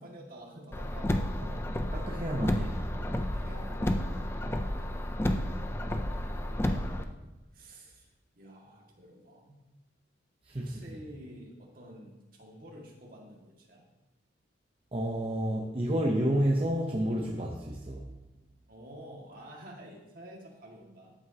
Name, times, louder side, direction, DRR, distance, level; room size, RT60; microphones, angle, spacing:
voice 1, 0.0-1.6 3.1-4.3 7.5-8.1 8.4-9.6 10.6-13.8 18.7-21.2, equal, 45° right, -2 dB, 1.9 m, -49 dB
Car, 0.7-7.0, left 1 dB, 15° left, 0.4 m, -31 dB
voice 2, 1.9-3.2 10.4-10.8 14.9-18.1, right 1 dB, 30° right, -1 dB, 0.8 m, -30 dB
13.5 x 7.9 x 2.8 m, 1.0 s
head